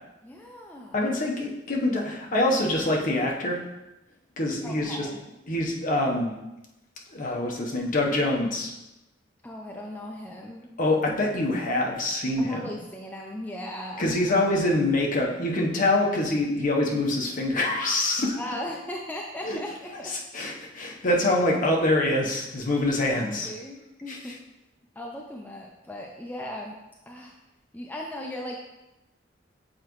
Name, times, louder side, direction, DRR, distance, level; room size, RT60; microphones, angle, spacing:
voice 1, 0.2-1.0 4.6-5.2 9.4-10.7 12.4-14.4 18.4-20.2 21.2-21.3 23.3-24.4 25.0-26.8 27.1-27.3 27.7-28.5, left 1 dB, 10° left, -1 dB, 0.5 m, -38 dB
voice 2, 0.9-3.6 4.4-5.1 5.5-6.3 7.1-8.7 10.8-12.7 14.0-18.4 19.4-19.6 20.1-23.5 24.1-24.3, left 1 dB, 45° left, -1 dB, 1.0 m, -25 dB
7.5 x 4.7 x 3.1 m, 0.97 s
head